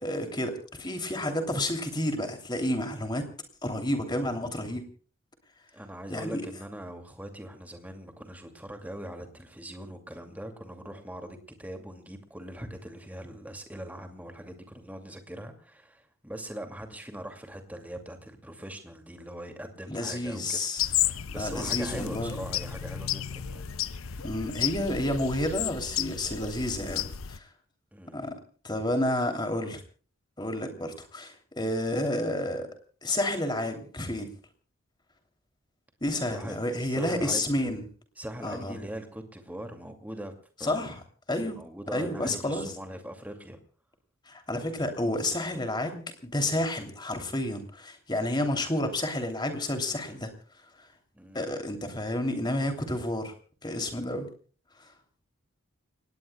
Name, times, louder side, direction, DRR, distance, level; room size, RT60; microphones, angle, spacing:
voice 1, 0.0-3.3 3.6-4.8 6.1-6.5 19.9-20.9 21.3-22.4 24.2-27.5 28.1-28.3 28.6-29.8 30.4-32.7 33.0-34.3 36.0-37.8 38.4-38.7 40.6-40.9 41.3-41.6 41.9-42.7 44.3-50.3 51.3-53.3 53.6-54.3, left 1 dB, 20° left, 5 dB, 2.9 m, -30 dB
voice 2, 5.7-24.3 27.9-28.3 36.3-37.4 38.2-40.3 40.6-40.9 41.6-43.6 51.1-51.5, right 1 dB, 5° right, 6 dB, 2.3 m, -41 dB
sound 1, 20.8-27.4, left 11 dB, 80° left, 0.7 m, -32 dB
29.5 x 18.5 x 2.3 m, 0.41 s
head